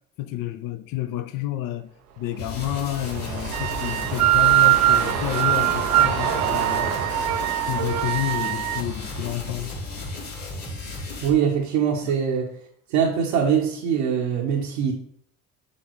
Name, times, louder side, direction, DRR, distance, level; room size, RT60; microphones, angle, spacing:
voice 1, 0.2-7.1 7.7-9.7 12.0-12.1, left 14 dB, 45° left, 0.7 m, -30 dB
sound 1, 2.2-10.6 11.0-11.1, right 6 dB, 80° right, 1.0 m, -32 dB
sound 2, 2.4-11.3, left 2 dB, 85° left, 2.2 m, -35 dB
sound 3, 3.5-8.8, right 15 dB, 40° right, 0.5 m, -22 dB
voice 2, 11.2-12.5 12.9-14.9, right 7 dB, 60° right, 1.2 m, -22 dB
8.8 x 3.9 x 3.2 m
figure-of-eight pair, 60°, 45 cm